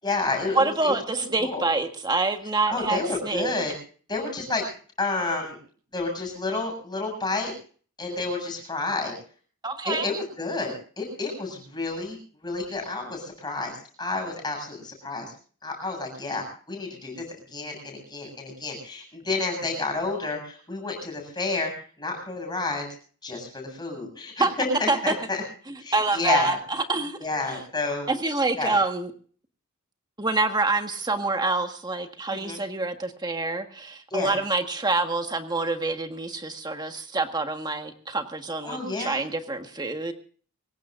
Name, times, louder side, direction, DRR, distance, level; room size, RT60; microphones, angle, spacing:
voice 1, 0.0-1.6 2.7-3.7 4.1-4.6 5.0-5.6 5.9-7.5 8.0-9.1 9.8-12.2 12.4-15.3 15.6-17.2 17.5-21.7 22.0-22.9 23.2-25.4 25.8-26.6 27.2-28.1 28.6-28.8 32.3-32.6 34.1-34.3 38.6-39.2, left 3 dB, 20° left, 2 dB, 7.5 m, -30 dB
voice 2, 0.5-3.6 9.6-10.1 24.4-24.5 24.9-25.1 25.7-27.2 27.5-27.6 28.1-29.1 30.2-40.1, right 3 dB, 20° right, 6 dB, 1.6 m, -26 dB
25.5 x 16.0 x 2.6 m, 0.43 s
head